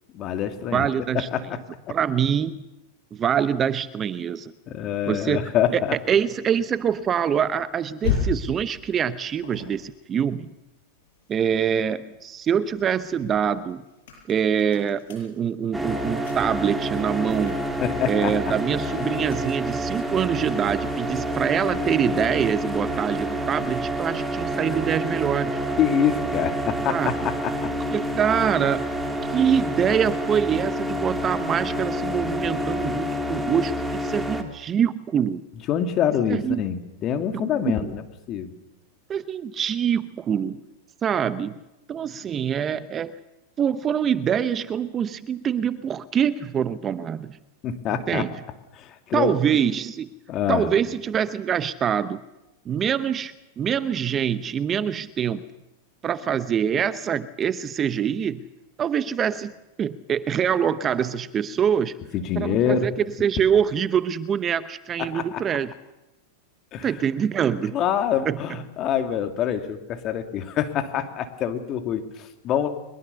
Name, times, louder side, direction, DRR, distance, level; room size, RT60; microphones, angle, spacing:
voice 1, 0.1-0.8 1.1-1.6 4.7-5.9 17.8-18.3 25.8-27.7 35.7-38.5 47.6-48.3 48.7-49.3 50.3-50.7 62.1-62.9 65.1-65.4 66.7-67.0 67.7-72.7, left 9 dB, 40° left, 7 dB, 2.5 m, -25 dB
voice 2, 0.7-1.3 1.9-2.6 3.1-4.5 5.1-5.8 6.1-10.5 11.3-13.8 14.3-17.6 18.1-25.6 26.9-27.1 27.9-28.9 29.3-35.4 36.3-36.6 37.4-37.5 37.8-37.9 39.1-40.6 41.0-41.6 41.9-43.1 43.6-47.4 47.9-48.4 49.1-50.1 50.5-52.2 52.7-55.4 56.0-58.4 58.8-59.5 59.8-62.0 62.3-65.7 66.8-67.8 68.2-68.4, right 8 dB, 30° right, 15 dB, 0.8 m, -24 dB
sound 1, 5.2-11.7 12.1-21.9, left 6 dB, 70° left, 7.5 m, -37 dB
sound 2, 15.7-34.4, equal, 5° right, 2.6 m, -28 dB
22.5 x 21.5 x 6.9 m, 0.95 s
hypercardioid pair, 110°, 0 cm